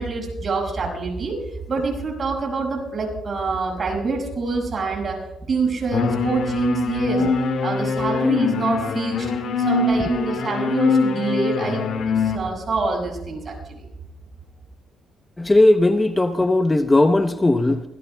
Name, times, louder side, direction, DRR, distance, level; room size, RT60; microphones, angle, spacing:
voice 1, 0.0-1.4 1.7-5.2 5.5-9.3 9.6-13.8, right 3 dB, 45° right, 0 dB, 6.7 m, -26 dB
sound 1, 5.9-12.4, left 4 dB, 70° left, 2.9 m, -23 dB
voice 2, 15.4-17.8, left 2 dB, 15° left, 8 dB, 0.8 m, -17 dB
26.0 x 18.0 x 2.3 m, 0.87 s
cardioid pair, 90°, 0 cm